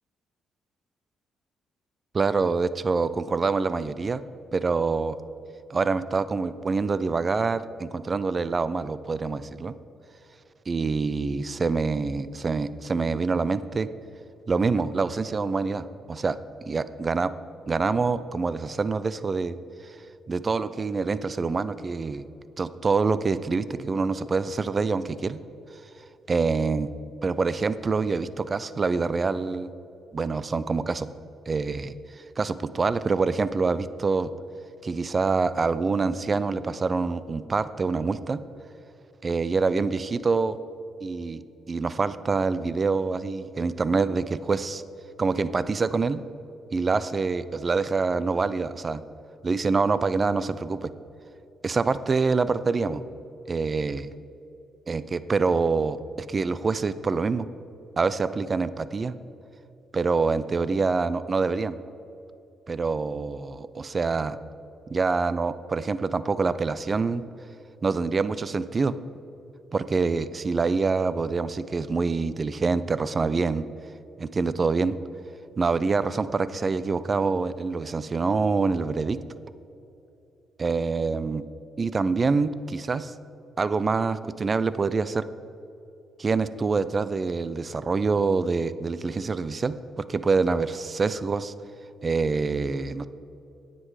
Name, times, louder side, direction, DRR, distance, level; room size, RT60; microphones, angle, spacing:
voice 1, 2.1-4.2 4.5-5.2 5.7-9.7 10.7-13.9 14.5-16.4 16.6-17.3 17.7-19.6 20.3-22.3 22.6-25.4 26.3-26.9 27.2-29.7 30.1-31.1 31.5-31.9 32.4-34.3 34.8-38.4 39.2-40.6 41.0-41.4 41.7-44.8 45.2-46.2 46.7-49.0 49.4-50.9 51.6-53.0 53.5-54.1 54.9-57.5 58.0-59.1 59.9-61.8 62.7-64.4 64.9-67.2 67.8-68.9 69.7-73.6 74.2-75.0 75.6-79.2 80.6-81.4 81.8-83.1 83.6-85.2 86.2-91.5 92.0-93.1, right 4 dB, 35° right, 15 dB, 0.4 m, -26 dB
9.7 x 7.6 x 4.7 m, 2.8 s
cardioid pair, 90°, 0 cm